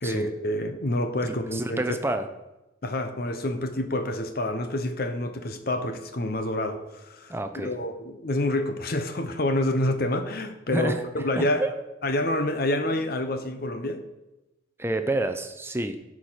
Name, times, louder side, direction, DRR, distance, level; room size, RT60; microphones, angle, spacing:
voice 1, 0.0-2.0 2.8-7.3 7.6-11.7 12.0-14.1, left 1 dB, 50° left, 8 dB, 0.8 m, -28 dB
voice 2, 1.2-2.3 7.3-7.7 10.7-11.0 11.4-11.8 14.8-16.0, right 2 dB, 10° right, 8 dB, 0.5 m, -29 dB
10.5 x 4.9 x 5.7 m, 0.98 s
head